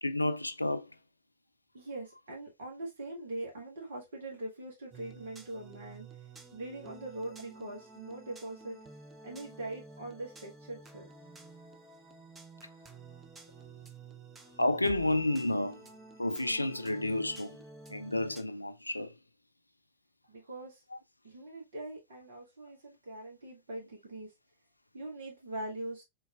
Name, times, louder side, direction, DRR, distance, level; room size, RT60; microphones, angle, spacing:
voice 1, 0.0-0.9 14.6-15.8 16.2-17.6 17.9-19.1, left 1 dB, 85° left, 0.4 m, -30 dB
voice 2, 1.7-6.1 6.5-8.8 9.2-11.1 20.3-20.8 21.2-24.3 24.9-26.0, right 2 dB, 60° right, 1.5 m, -42 dB
sound 1, 4.9-18.4, right 3 dB, 15° right, 0.7 m, -52 dB
4.1 x 3.9 x 2.4 m
figure-of-eight pair, 90°, 0 cm